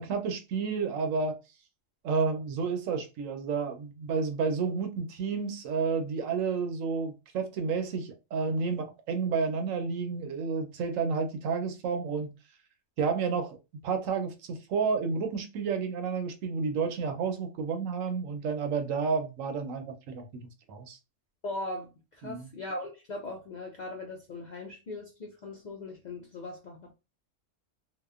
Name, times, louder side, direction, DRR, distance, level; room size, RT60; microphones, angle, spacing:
voice 1, 0.0-1.4 2.0-12.3 13.0-13.6 13.8-21.0 22.2-22.5, right 5 dB, 85° right, 1.0 m, -31 dB
voice 2, 21.4-26.9, left 2 dB, 70° left, 0.4 m, -39 dB
2.8 x 2.1 x 2.3 m
omnidirectional pair, 1.3 m